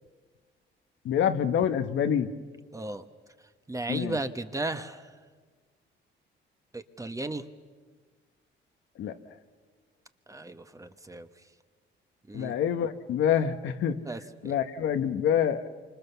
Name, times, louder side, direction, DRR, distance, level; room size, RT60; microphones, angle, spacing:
voice 1, 1.0-2.3 3.9-4.2 9.0-9.2 12.3-14.0 14.4-15.7, left 8 dB, 80° left, 8 dB, 1.3 m, -26 dB
voice 2, 2.7-3.0 3.7-5.1 6.7-7.4 10.3-11.3 12.3-12.6 14.1-14.5, right 2 dB, 15° right, 9 dB, 1.3 m, -35 dB
28.0 x 25.5 x 7.0 m, 1.5 s
cardioid pair, 90°, 20 cm